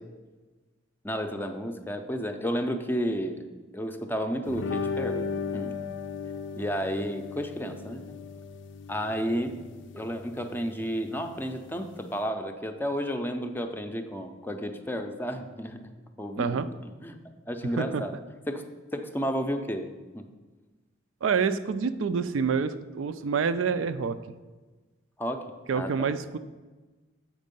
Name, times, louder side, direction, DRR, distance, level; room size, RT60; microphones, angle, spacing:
voice 1, 1.0-3.5 3.7-5.8 6.5-8.0 8.9-9.6 9.9-15.9 16.2-17.2 17.5-18.2 18.5-18.6 18.9-20.3 25.2-25.5 25.7-26.1, equal, 10° left, 6 dB, 0.5 m, -32 dB
sound 1, 4.5-12.2, left 5 dB, 65° left, 0.4 m, -36 dB
voice 2, 16.4-16.7 17.8-18.0 21.2-24.2 25.7-26.4, right 5 dB, 80° right, 11 dB, 0.4 m, -27 dB
7.4 x 5.3 x 5.3 m, 1.3 s
head